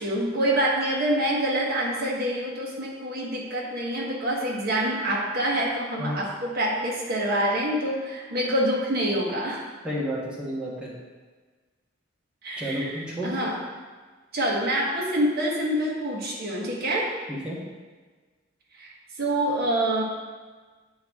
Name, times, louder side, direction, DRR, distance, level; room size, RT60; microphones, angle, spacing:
voice 1, 0.0-9.6 12.4-13.6 14.3-17.1 18.8-20.0, right 1 dB, 50° right, -3 dB, 1.3 m, -26 dB
voice 2, 9.8-10.9 12.6-13.3 17.3-17.6, equal, 5° right, -6 dB, 1.3 m, -31 dB
8.6 x 4.0 x 3.6 m, 1.4 s
head